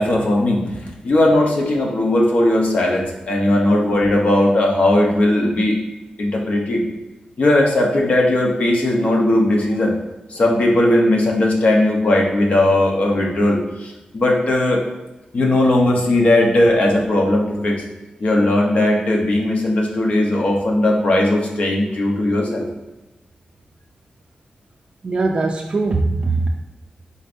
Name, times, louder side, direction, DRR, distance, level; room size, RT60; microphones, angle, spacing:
voice 1, 0.0-5.8 6.2-6.8 7.4-9.9 10.3-14.8 15.3-17.8 18.2-22.7, left 1 dB, 60° left, 0 dB, 0.8 m, -17 dB
voice 2, 25.0-26.5, right 3 dB, 45° right, 0 dB, 0.3 m, -21 dB
5.1 x 4.0 x 2.6 m, 1.0 s
wide cardioid pair, 120°, 3 cm